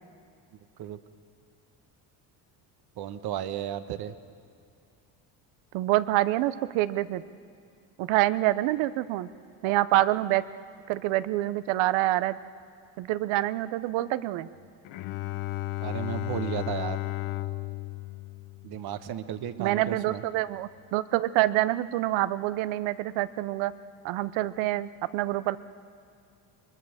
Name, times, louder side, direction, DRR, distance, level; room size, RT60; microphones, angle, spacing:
voice 1, 3.0-4.1 15.8-17.0 18.6-20.2, right 10 dB, 50° right, 11 dB, 1.2 m, -34 dB
voice 2, 5.7-7.2 8.0-9.3 9.6-10.4 10.9-12.4 13.0-14.5 19.6-23.7 24.0-25.6, right 15 dB, 75° right, 15 dB, 0.9 m, -26 dB
Bowed string instrument, 14.8-19.4, left 16 dB, 75° left, 1.1 m, -34 dB
23.0 x 21.0 x 6.5 m, 2.4 s
supercardioid pair, 100°, 47 cm